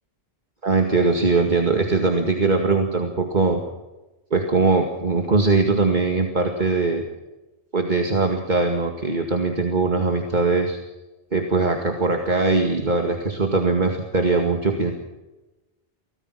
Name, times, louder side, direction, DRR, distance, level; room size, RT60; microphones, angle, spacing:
voice 1, 0.6-3.6 4.3-7.0 7.7-10.8 11.3-14.9, right 3 dB, 45° right, 3 dB, 2.3 m, -21 dB
24.5 x 18.0 x 6.2 m, 1.1 s
omnidirectional pair, 1.1 m